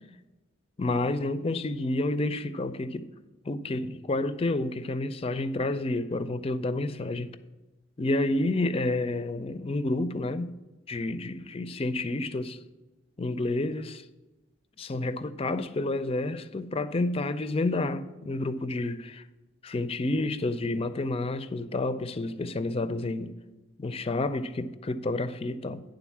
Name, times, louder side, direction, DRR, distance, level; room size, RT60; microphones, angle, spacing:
voice 1, 0.8-3.1 3.5-7.3 8.0-10.5 10.9-12.6 13.2-14.0 14.8-19.2 19.6-23.3 23.8-25.8, left 2 dB, 30° left, 0.4 m, -29 dB
10.0 x 3.9 x 7.1 m
head